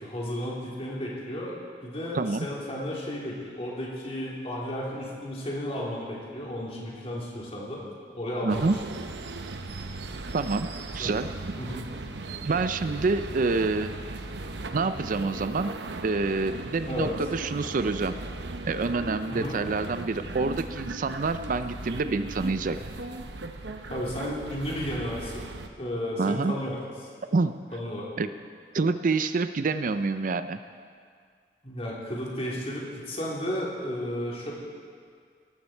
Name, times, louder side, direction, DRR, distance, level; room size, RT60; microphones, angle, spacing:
voice 1, 0.0-1.5 1.8-7.8 8.1-8.7 11.0-11.2 11.6-11.8 16.9-17.2 19.3-19.6 23.9-25.5 25.8-27.1 27.7-28.1 31.6-34.5, equal, 35° left, -5 dB, 3.5 m, -33 dB
voice 2, 2.1-2.5 8.4-8.8 10.3-11.3 12.4-13.9 14.7-15.7 16.0-18.2 18.6-22.8 26.2-26.5 27.2-27.6 28.2-28.3 28.7-30.6, right 3 dB, 50° right, 11 dB, 0.5 m, -27 dB
sound 1, 8.5-25.7, right 2 dB, 80° right, 0.9 m, -37 dB
18.5 x 14.0 x 4.5 m, 2.1 s
head